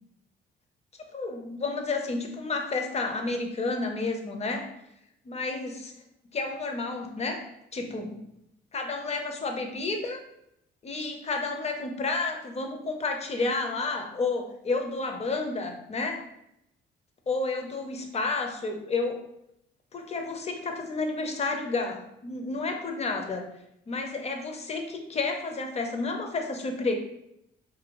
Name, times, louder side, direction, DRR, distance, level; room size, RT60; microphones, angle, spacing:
voice 1, 1.1-4.7 5.3-5.9 6.3-7.5 7.7-8.1 8.7-10.2 10.8-16.3 17.3-19.2 19.9-23.5 23.9-26.9, left 3 dB, 30° left, 4 dB, 0.5 m, -31 dB
2.6 x 2.3 x 2.9 m, 0.80 s
cardioid pair, 90°, 20 cm